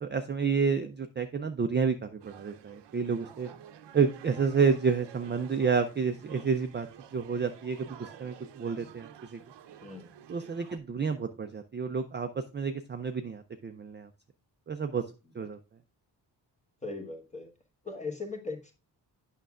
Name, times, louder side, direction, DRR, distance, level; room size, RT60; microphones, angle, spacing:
voice 1, 0.0-3.5 3.9-6.9 7.1-9.4 10.3-14.1 14.7-15.1 15.3-15.6, right 5 dB, 25° right, 7 dB, 0.4 m, -30 dB
sound 1, 2.2-10.8, right 9 dB, 75° right, 0.7 m, -51 dB
voice 2, 16.8-17.5 17.8-18.7, left 3 dB, 15° left, 4 dB, 1.3 m, -38 dB
9.1 x 6.1 x 2.4 m, 0.30 s
wide cardioid pair, 165°, 42 cm